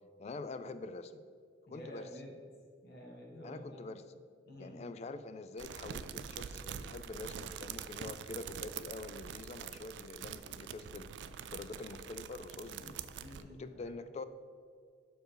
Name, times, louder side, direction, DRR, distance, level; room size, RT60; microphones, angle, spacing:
voice 1, 0.2-1.2 1.7-2.1 3.4-4.2 4.6-11.1 11.4-13.0 13.6-14.2, left 3 dB, 35° left, 11 dB, 0.3 m, -45 dB
voice 2, 1.7-2.3 2.8-3.8 4.5-4.9 12.8-14.0, equal, 60° left, -1 dB, 1.4 m, -50 dB
sound 1, 5.6-13.4, right 8 dB, 75° right, 0.3 m, -45 dB
6.4 x 4.8 x 4.6 m, 2.1 s
head